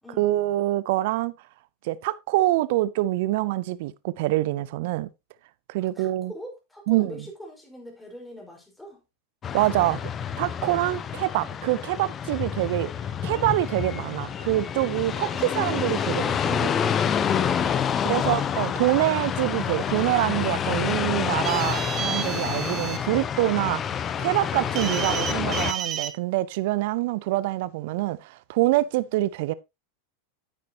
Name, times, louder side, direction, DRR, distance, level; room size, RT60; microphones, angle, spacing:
voice 1, 0.2-1.3 1.8-5.1 5.7-6.3 6.9-7.2 9.5-10.0 10.4-12.9 13.2-16.7 18.0-29.5, right 17 dB, 60° right, 0.5 m, -25 dB
voice 2, 5.8-9.0 17.4-18.3, equal, 5° left, 4.4 m, -43 dB
sound 1, 9.4-25.7, left 8 dB, 30° left, 0.9 m, -28 dB
sound 2, 21.4-23.0 24.8-26.1, right 9 dB, 35° right, 1.7 m, -31 dB
9.9 x 8.5 x 2.8 m
hypercardioid pair, 95°, 0 cm